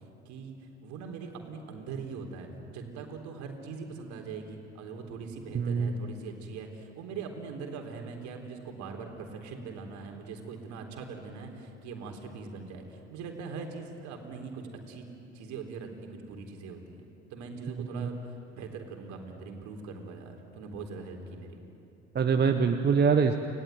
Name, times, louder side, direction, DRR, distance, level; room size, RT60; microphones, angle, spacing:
voice 1, 0.8-15.1 15.3-18.2 18.5-21.6, right 4 dB, 50° right, 3 dB, 4.0 m, -41 dB
voice 2, 5.5-5.9 17.8-18.1 22.1-23.3, right 6 dB, 30° right, 6 dB, 1.3 m, -24 dB
29.5 x 18.5 x 9.3 m, 2.9 s
figure-of-eight pair, 65°, 36 cm